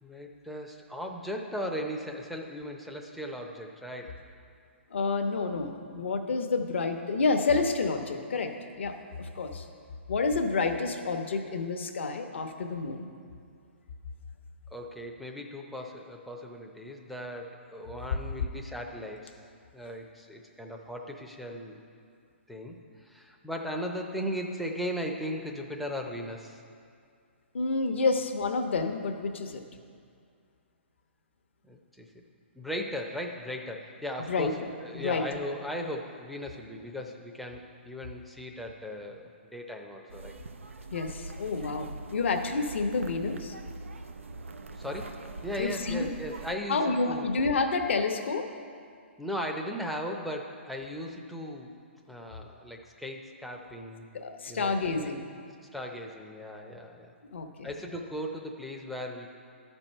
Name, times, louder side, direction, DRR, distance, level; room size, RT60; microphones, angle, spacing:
voice 1, 0.0-4.2 14.7-19.4 19.7-21.8 22.5-26.6 31.7-32.1 32.6-40.3 44.8-47.3 49.2-51.7 52.1-54.1 54.5-55.1 55.7-57.1 57.6-59.3, equal, ahead, 0 dB, 0.6 m, -37 dB
voice 2, 4.9-9.7 10.1-13.1 27.5-29.6 34.3-35.2 40.9-43.5 45.6-46.1 46.7-48.5 54.1-55.3 57.3-57.7, left 4 dB, 65° left, 5 dB, 0.9 m, -29 dB
sound 1, 40.1-46.6, right 3 dB, 85° right, 0.5 m, -42 dB
11.5 x 4.5 x 5.4 m, 2.3 s
hypercardioid pair, 135°, 7 cm